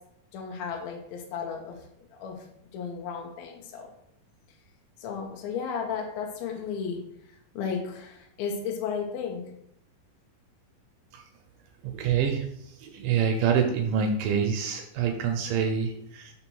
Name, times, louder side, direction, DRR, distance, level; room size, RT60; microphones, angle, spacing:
voice 1, 0.3-2.5 2.7-3.9 5.0-7.0 7.5-9.5, left 6 dB, 80° left, 1 dB, 2.8 m, -34 dB
voice 2, 11.8-12.5 12.8-16.3, right 7 dB, 75° right, 3 dB, 2.1 m, -26 dB
6.0 x 4.0 x 6.2 m, 0.75 s
omnidirectional pair, 4.2 m